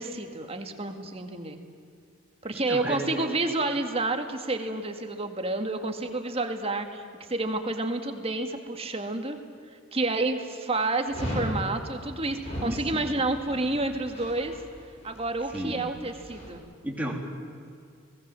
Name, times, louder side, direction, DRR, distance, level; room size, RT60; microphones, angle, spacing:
voice 1, 0.0-1.6 2.4-7.0 7.3-9.4 9.9-14.6 15.0-16.6, right 2 dB, 30° right, 6 dB, 2.0 m, -29 dB
voice 2, 2.7-3.2 12.6-13.1 15.5-15.8 16.8-17.2, right 1 dB, 10° right, -1 dB, 3.5 m, -33 dB
Dog, 11.1-16.5, equal, 30° left, 7.6 m, -37 dB
30.0 x 19.5 x 7.7 m, 2.3 s
head